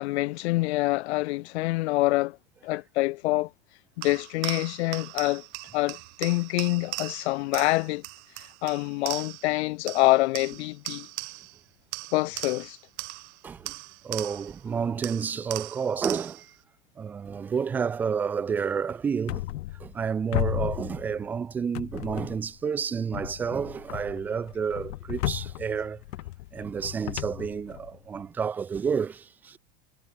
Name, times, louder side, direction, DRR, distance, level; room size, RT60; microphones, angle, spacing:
voice 1, 0.0-2.4 2.6-3.5 4.0-5.4 5.7-8.0 8.6-11.1 12.1-12.8, left 20 dB, 40° left, 0.9 m, -26 dB
sound 1, 4.0-9.6 9.9-11.6 11.9-14.6 15.0-16.5, right 26 dB, 40° right, 3.4 m, -39 dB
voice 2, 14.0-16.5 17.0-19.4 19.8-26.0 26.5-29.6, right 6 dB, 5° right, 0.4 m, -30 dB
sound 2, 19.3-20.1 20.3-21.4 21.7-22.6 23.1-28.2, left 16 dB, 65° left, 1.8 m, -34 dB
supercardioid pair, 180°, 50 cm